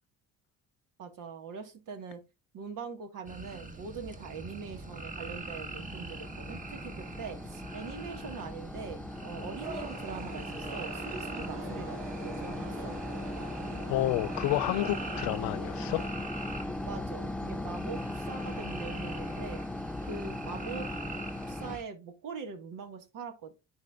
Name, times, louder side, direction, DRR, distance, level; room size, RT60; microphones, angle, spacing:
voice 1, 1.0-2.2 2.5-12.9 16.9-19.6 20.0-20.9 21.5-23.6, right 5 dB, 65° right, 1.8 m, -42 dB
sound 1, 3.3-21.8, right 2 dB, 25° right, 1.3 m, -43 dB
sound 2, 4.2-21.8, left 2 dB, 5° left, 0.3 m, -39 dB
sound 3, 9.6-16.1, right 3 dB, 85° right, 2.0 m, -44 dB
voice 2, 13.9-16.0, left 16 dB, 80° left, 0.5 m, -30 dB
9.6 x 4.2 x 2.4 m
supercardioid pair, 70°, 34 cm